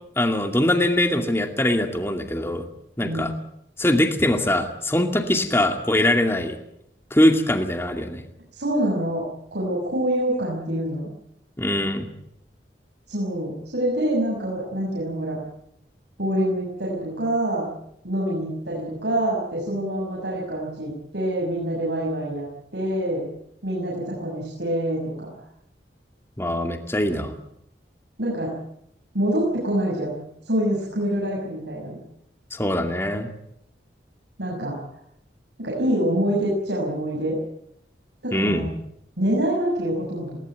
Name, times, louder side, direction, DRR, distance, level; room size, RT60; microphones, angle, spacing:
voice 1, 0.2-2.6 3.0-3.3 3.8-6.6 7.1-8.2 11.6-12.1 26.4-27.3 32.5-33.3 38.3-38.7, left 1 dB, 15° left, 5 dB, 2.4 m, -22 dB
voice 2, 3.0-3.3 8.5-9.3 9.5-11.1 13.1-15.4 16.2-17.7 18.0-22.5 22.7-23.3 23.6-25.3 28.2-28.5 29.1-30.2 30.4-32.0 34.4-34.8 35.6-37.4 38.2-38.7 39.2-40.4, right 1 dB, 85° right, -3 dB, 6.6 m, -25 dB
20.5 x 18.5 x 9.2 m, 0.74 s
head